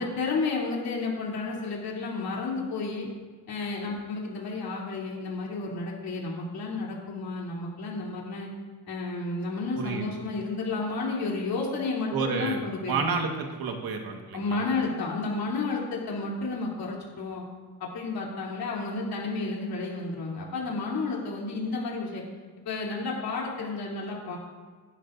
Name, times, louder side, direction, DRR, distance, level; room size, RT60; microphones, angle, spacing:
voice 1, 0.0-3.1 3.5-8.5 8.9-13.2 14.3-17.4 17.8-22.2 22.6-24.4, left 3 dB, 85° left, -3 dB, 3.2 m, -31 dB
voice 2, 9.7-10.1 12.1-12.6 12.9-14.6, right 5 dB, 85° right, 3 dB, 1.6 m, -30 dB
16.0 x 11.0 x 2.6 m, 1.5 s
cardioid pair, 115°, 35 cm